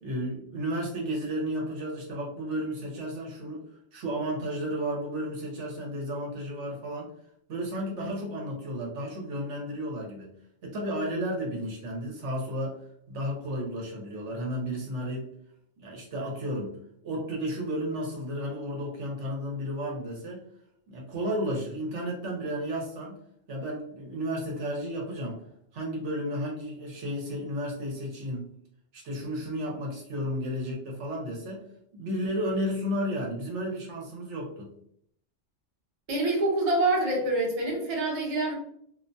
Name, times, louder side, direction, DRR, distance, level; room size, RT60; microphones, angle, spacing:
voice 1, 0.0-3.6 3.9-7.1 7.5-10.3 10.6-12.8 13.1-15.3 15.8-16.7 17.0-20.4 20.9-23.2 23.5-25.4 25.7-28.5 28.9-31.6 31.9-34.7, equal, 70° right, -1 dB, 1.0 m, -33 dB
voice 2, 36.1-38.5, right 2 dB, 35° right, -2 dB, 0.7 m, -26 dB
2.4 x 2.2 x 2.6 m, 0.69 s
omnidirectional pair, 1.3 m